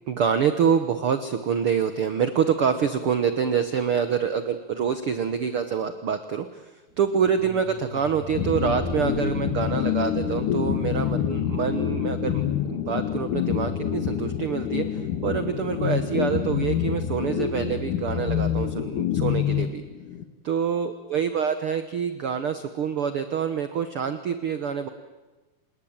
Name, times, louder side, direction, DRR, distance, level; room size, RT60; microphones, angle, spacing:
voice 1, 0.1-6.7 7.0-12.4 12.7-19.8 20.4-24.9, right 7 dB, 65° right, 10 dB, 1.3 m, -26 dB
sound 1, 6.9-12.0, equal, 20° right, 4.1 m, -41 dB
sound 2, 8.4-20.2, left 9 dB, 65° left, 2.9 m, -27 dB
28.0 x 20.5 x 8.9 m, 1.2 s
omnidirectional pair, 4.1 m